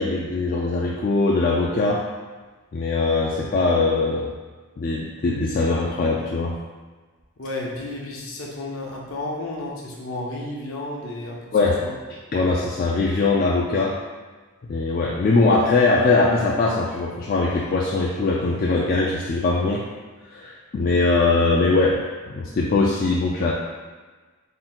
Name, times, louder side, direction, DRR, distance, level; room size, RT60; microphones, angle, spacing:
voice 1, 0.0-2.0 2.7-4.3 4.8-6.6 11.5-11.8 12.3-14.0 14.7-19.8 20.3-22.0 22.3-23.5, left 3 dB, 40° left, -3 dB, 0.3 m, -21 dB
voice 2, 7.4-11.9, left 2 dB, 65° left, -3 dB, 0.8 m, -32 dB
3.7 x 2.3 x 4.3 m, 1.4 s
head